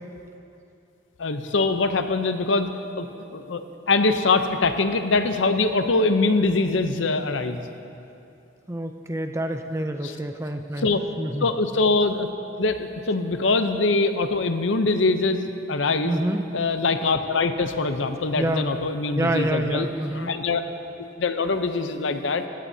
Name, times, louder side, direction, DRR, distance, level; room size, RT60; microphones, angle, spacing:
voice 1, 1.2-2.7 3.0-3.1 3.3-3.6 3.9-7.6 10.0-10.2 10.8-11.0 11.4-12.3 12.6-16.2 16.5-19.9 20.1-20.6 21.2-22.4, left 3 dB, 90° left, 8 dB, 0.7 m, -23 dB
voice 2, 8.7-10.9 11.2-11.5 16.0-16.5 18.4-18.7 19.2-20.3, right 1 dB, 15° right, 6 dB, 0.5 m, -27 dB
16.5 x 15.0 x 2.8 m, 2.7 s
head